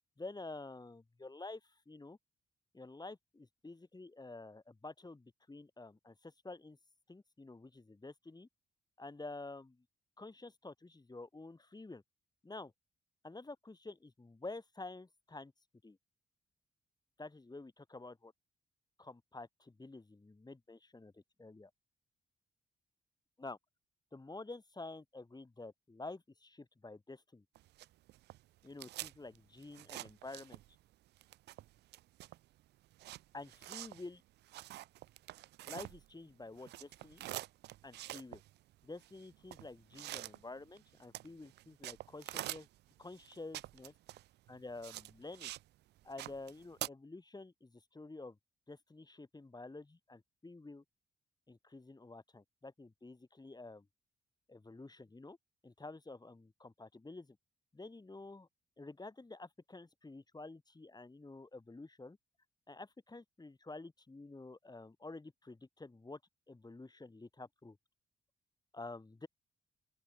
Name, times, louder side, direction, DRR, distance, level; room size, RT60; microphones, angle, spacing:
voice 1, 0.2-2.2 2.7-6.8 7.1-8.5 9.0-9.8 10.2-12.0 12.4-12.7 13.2-15.5 15.8-16.0 17.2-18.3 19.0-21.7 23.4-23.6 24.1-27.4 28.6-30.6 33.3-34.2 35.7-37.2 37.8-38.4 38.8-42.7 43.0-43.9 44.5-45.5 46.0-48.4 48.7-50.8 51.5-53.9 54.5-55.4 55.6-57.4 57.7-58.5 58.8-62.2 62.7-66.2 66.5-67.8 68.7-69.3, left 2 dB, 25° left, 2.9 m, -50 dB
sound 1, 27.6-30.9 31.1-36.3 36.6-45.7 46.0-46.9, right 16 dB, 80° right, 1.9 m, -47 dB
open air
hypercardioid pair, 45°, 17 cm